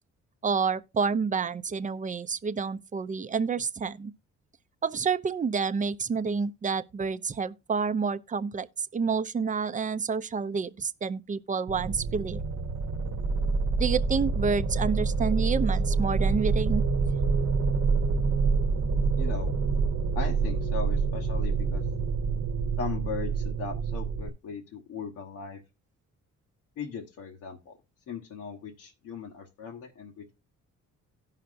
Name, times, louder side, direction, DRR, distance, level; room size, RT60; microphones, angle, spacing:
voice 1, 0.4-4.1 4.8-12.4 13.8-16.8, right 5 dB, 25° right, 0.5 m, -29 dB
sound 1, 11.7-24.3, right 4 dB, 50° right, 0.9 m, -27 dB
voice 2, 19.2-19.5 20.1-21.8 22.8-25.6 26.8-27.8 28.1-30.3, left 6 dB, 85° left, 1.3 m, -38 dB
17.0 x 5.7 x 2.5 m
cardioid pair, 90°, 30 cm